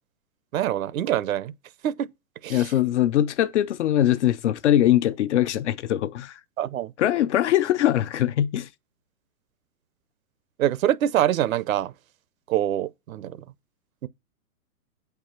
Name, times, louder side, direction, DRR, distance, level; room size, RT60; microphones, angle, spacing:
voice 1, 0.5-1.5 1.8-2.1 2.4-2.7 6.6-6.9 10.6-11.9 12.5-13.4 14.0-14.1, right 11 dB, 60° right, 0.8 m, -25 dB
voice 2, 2.5-6.4 7.0-8.7, left 12 dB, 50° left, 0.6 m, -22 dB
8.2 x 4.7 x 6.4 m
hypercardioid pair, 150°, 46 cm